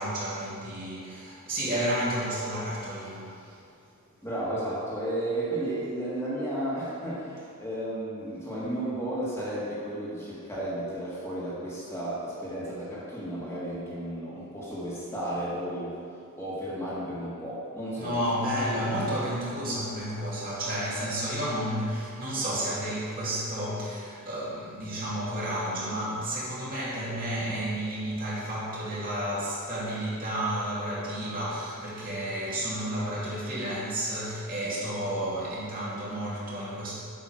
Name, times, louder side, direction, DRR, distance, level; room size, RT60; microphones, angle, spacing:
voice 1, 0.0-3.6 18.0-36.9, right 1 dB, 40° right, -8 dB, 2.5 m, -31 dB
voice 2, 4.2-16.0 16.3-18.2, right 1 dB, 10° left, -8 dB, 1.9 m, -33 dB
8.7 x 5.6 x 6.3 m, 2.3 s
head